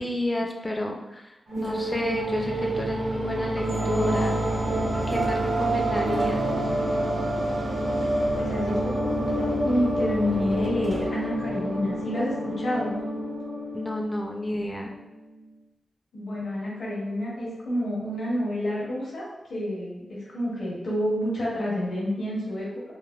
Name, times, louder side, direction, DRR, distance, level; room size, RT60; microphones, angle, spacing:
voice 1, 0.0-4.4 5.1-6.4 13.7-15.0, left 1 dB, 20° left, 1 dB, 0.3 m, -30 dB
sound 1, 1.5-14.4, right 1 dB, 80° right, 0.7 m, -27 dB
voice 2, 8.3-12.9 16.1-22.8, equal, 75° left, -6 dB, 0.9 m, -29 dB
3.2 x 2.1 x 2.2 m, 1.0 s
wide cardioid pair, 105°, 0 cm